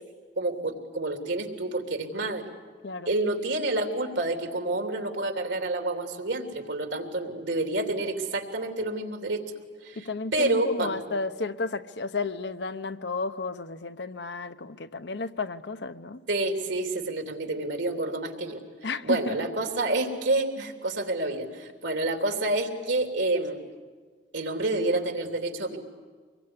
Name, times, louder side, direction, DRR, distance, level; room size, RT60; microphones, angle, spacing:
voice 1, 0.4-2.4 3.1-9.4 9.8-10.1 10.3-11.0 16.3-18.6 19.0-23.6 24.3-25.8, right 2 dB, 75° right, 4 dB, 3.3 m, -28 dB
voice 2, 10.0-16.2 18.8-19.5, left 3 dB, 65° left, 10 dB, 0.9 m, -33 dB
25.5 x 22.0 x 9.8 m, 1.5 s
head